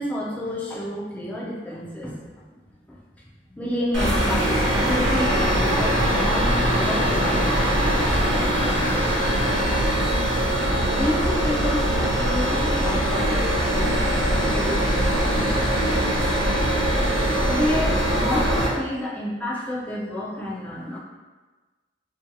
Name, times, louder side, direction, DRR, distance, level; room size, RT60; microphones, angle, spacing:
voice 1, 0.0-2.2 3.5-8.1 10.9-15.8 17.4-21.0, left 1 dB, 10° left, -5 dB, 0.4 m, -30 dB
sound 1, 3.9-18.7, right 1 dB, 85° right, 0.8 m, -22 dB
2.6 x 2.6 x 2.2 m, 1.3 s
head